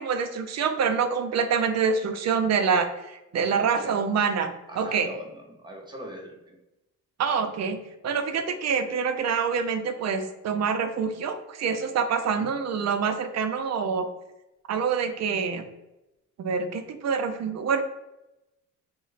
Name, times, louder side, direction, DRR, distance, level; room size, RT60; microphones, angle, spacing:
voice 1, 0.0-4.5 4.8-5.1 7.2-7.8 8.0-14.1 14.7-15.7 16.4-17.8, right 6 dB, 55° right, 8 dB, 0.5 m, -26 dB
voice 2, 3.5-4.0 4.7-6.6 12.4-12.5, equal, 15° right, 1 dB, 0.8 m, -41 dB
3.0 x 2.1 x 4.0 m, 0.94 s
cardioid pair, 100°, 32 cm